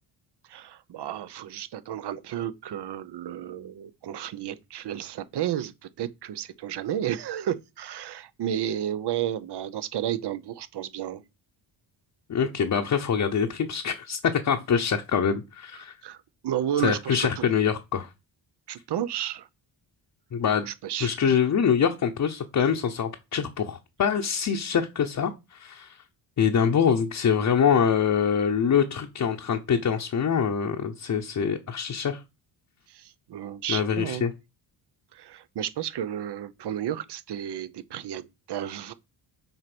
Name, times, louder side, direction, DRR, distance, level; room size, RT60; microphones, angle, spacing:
voice 1, 0.5-11.2 16.0-16.2 16.4-17.4 18.7-19.5 20.6-21.3 32.9-34.3 35.1-38.9, right 10 dB, 60° right, 0.8 m, -32 dB
voice 2, 12.3-15.9 16.8-18.1 20.3-20.7 21.0-26.0 26.4-32.2 33.7-34.3, left 7 dB, 40° left, 0.9 m, -24 dB
8.0 x 4.5 x 6.0 m
cardioid pair, 140°, 46 cm